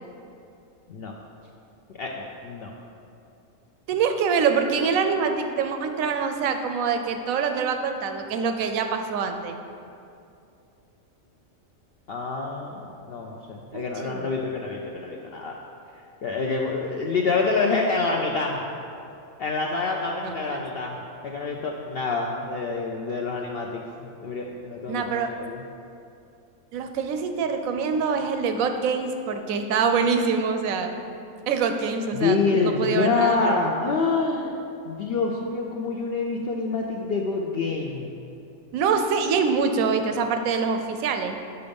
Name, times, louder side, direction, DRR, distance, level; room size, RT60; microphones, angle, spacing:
voice 1, 2.0-2.7 12.1-15.6 16.2-18.6 19.4-25.6 32.1-34.5 34.9-38.1, left 4 dB, 60° left, 0 dB, 0.6 m, -27 dB
voice 2, 3.9-9.6 13.7-14.4 20.2-20.6 24.9-25.3 26.7-30.9 31.5-33.6 38.7-41.4, right 5 dB, 85° right, 7 dB, 1.0 m, -25 dB
6.9 x 5.2 x 5.2 m, 2.6 s
omnidirectional pair, 1.4 m